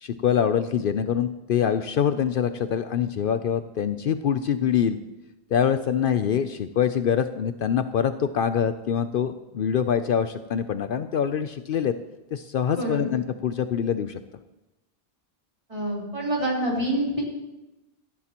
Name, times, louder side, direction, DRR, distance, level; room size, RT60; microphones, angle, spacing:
voice 1, 0.0-5.0 5.5-11.9 12.3-14.2, left 8 dB, 65° left, 10 dB, 0.7 m, -24 dB
voice 2, 15.7-17.2, right 1 dB, 30° right, -3 dB, 4.0 m, -26 dB
17.5 x 15.0 x 3.0 m, 1.0 s
omnidirectional pair, 1.0 m